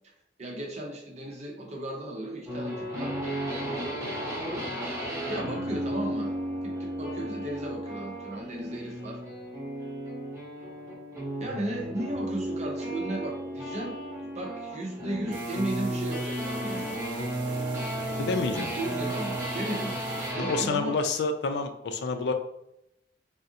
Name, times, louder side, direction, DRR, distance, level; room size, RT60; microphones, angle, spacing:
voice 1, 0.4-3.1 5.3-6.3 6.6-9.2 11.4-17.0 18.5-19.9 20.3-21.0, right 1 dB, 40° right, 0 dB, 0.7 m, -35 dB
sound 1, 2.5-20.7, right 1 dB, 20° right, 1.1 m, -34 dB
sound 2, 15.3-20.3, right 5 dB, 85° right, 0.7 m, -48 dB
voice 2, 18.2-18.7 20.4-22.3, left 3 dB, 65° left, 7 dB, 0.4 m, -28 dB
3.4 x 2.5 x 2.7 m, 0.82 s
head